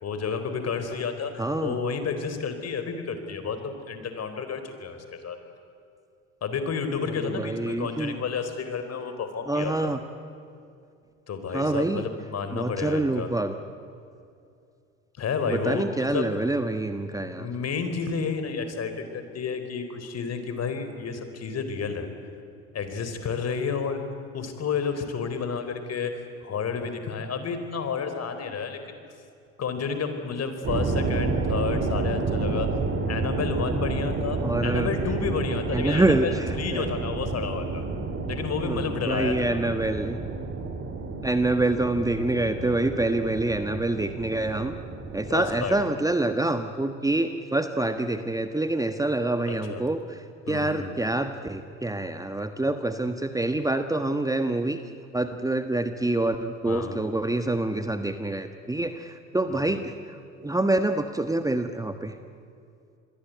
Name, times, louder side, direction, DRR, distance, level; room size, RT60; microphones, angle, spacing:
voice 1, 0.0-1.3 1.6-5.4 6.4-9.9 11.3-13.3 15.2-16.3 17.4-22.1 22.7-24.0 24.3-29.0 29.6-32.7 33.1-37.8 38.3-39.4 45.3-45.8 49.5-49.8 50.5-51.0 56.7-57.0 59.5-59.8, left 5 dB, 40° left, 8 dB, 4.3 m, -31 dB
voice 2, 1.4-1.8 7.2-8.2 9.5-10.0 11.5-12.0 12.5-13.5 15.5-17.5 34.4-34.9 35.7-36.9 38.6-40.2 41.2-44.7 45.1-54.8 55.1-60.2 60.4-62.2, right 2 dB, 10° right, 8 dB, 1.4 m, -26 dB
sound 1, 30.6-45.8, right 3 dB, 35° right, 3.4 m, -30 dB
27.5 x 22.0 x 9.5 m, 2.5 s
hypercardioid pair, 70°, 38 cm